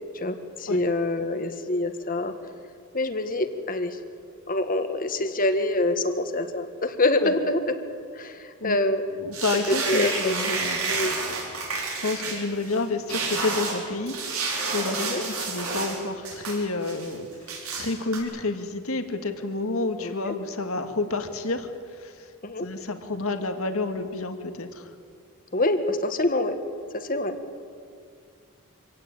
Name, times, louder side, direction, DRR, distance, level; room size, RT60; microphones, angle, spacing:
voice 1, 0.1-2.3 2.9-4.0 4.5-7.7 8.1-9.0 9.9-10.6 10.9-11.1 15.0-15.2 20.0-20.1 22.4-22.7 25.5-26.6 26.9-27.3, left 2 dB, 40° left, 8 dB, 1.7 m, -26 dB
voice 2, 9.2-11.1 11.8-17.5 17.7-22.3 22.6-24.9, left 3 dB, 70° left, 7 dB, 1.9 m, -30 dB
sound 1, 9.3-12.8 13.1-16.0 16.2-17.1 17.5-18.2, right 4 dB, 80° right, 5.3 m, -30 dB
25.5 x 17.0 x 9.0 m, 2.2 s
head